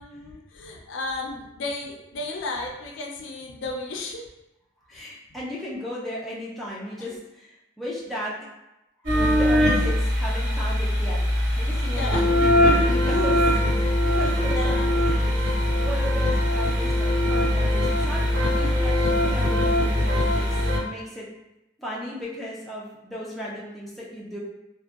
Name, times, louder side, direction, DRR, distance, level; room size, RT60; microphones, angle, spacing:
voice 1, 0.0-4.2 4.9-5.1 7.0-7.2 11.9-12.3 14.2-15.0, left 2 dB, 65° left, 0 dB, 0.4 m, -34 dB
voice 2, 4.9-8.3 9.2-11.2 11.6-15.4 15.8-19.0 19.2-21.3 21.8-24.4, equal, ahead, -7 dB, 0.4 m, -35 dB
sound 1, 9.0-20.8, left 1 dB, 70° right, 1.4 m, -21 dB
2.6 x 2.1 x 2.3 m, 0.93 s
head